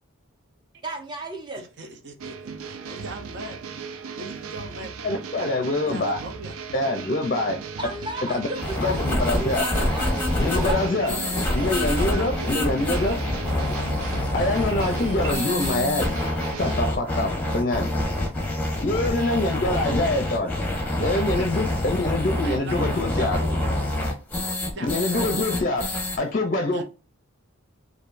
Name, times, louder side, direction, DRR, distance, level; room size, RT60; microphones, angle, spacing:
voice 1, 0.8-1.6 7.8-10.1 10.3-11.1, right 1 dB, 20° right, 0.9 m, -34 dB
voice 2, 1.5-5.0 5.9-6.6 9.8-9.9 11.0-11.6 11.9-12.5 19.6-20.0 20.9-21.5 22.4-23.6 24.6-25.3 26.7-26.8, right 2 dB, 55° right, 0.8 m, -39 dB
sound 1, 2.2-16.8, right 5 dB, 90° right, 0.5 m, -37 dB
voice 3, 5.0-6.2 6.7-7.6 8.3-8.5 8.8-9.6 10.5-13.2 14.3-16.1 16.6-17.9 18.8-20.6 21.0-23.4 24.9-26.8, left 2 dB, 40° left, 0.5 m, -25 dB
sound 2, 6.4-7.2 8.0-8.8 10.4-11.2 12.5-13.2 14.7-15.6, right 8 dB, 70° right, 1.4 m, -46 dB
sound 3, 8.6-26.2, left 1 dB, 10° left, 0.9 m, -26 dB
4.8 x 2.6 x 2.5 m
head